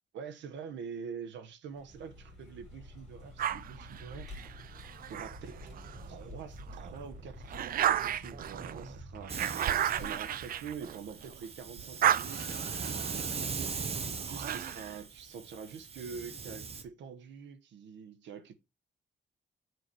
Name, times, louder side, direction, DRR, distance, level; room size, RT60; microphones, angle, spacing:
voice 1, 0.1-4.3 5.1-5.7 6.1-9.4 10.0-13.8 14.2-18.5, right 6 dB, 85° right, 1.2 m, -45 dB
Vehicle, 1.7-12.0, equal, ahead, 4.7 m, -49 dB
sound 1, 3.4-6.1 6.6-11.4 11.7-15.0, right 10 dB, 55° right, 0.4 m, -34 dB
Hiss, 9.3-16.8, right 5 dB, 35° right, 0.9 m, -40 dB
8.3 x 4.9 x 4.5 m
cardioid pair, 160°, 18 cm